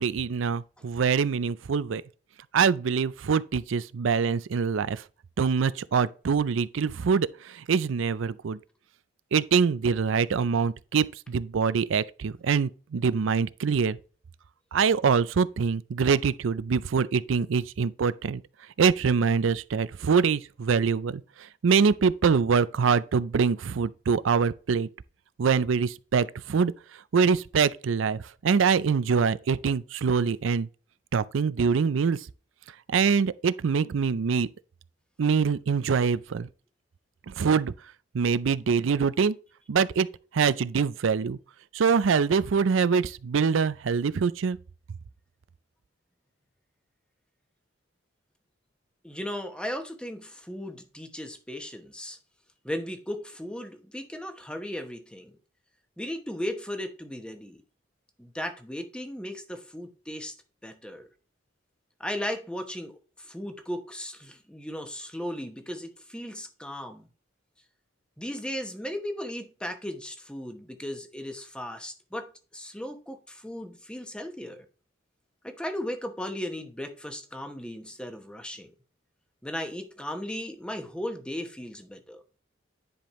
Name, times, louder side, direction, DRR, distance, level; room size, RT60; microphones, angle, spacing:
voice 1, 0.0-2.0 2.5-5.0 5.4-8.6 9.3-14.0 14.7-18.4 18.8-24.9 25.4-26.7 27.1-30.7 31.1-32.3 32.9-34.5 35.2-36.5 37.3-37.7 38.1-39.4 39.7-40.1 40.3-41.4 41.7-44.6, right 6 dB, 80° right, 0.4 m, -24 dB
voice 2, 49.0-52.2 52.6-55.3 56.0-57.6 58.2-60.3 60.6-61.1 62.0-67.1 68.2-74.7 75.4-78.7 79.4-82.2, left 1 dB, 5° left, 0.9 m, -36 dB
10.0 x 5.2 x 3.1 m
head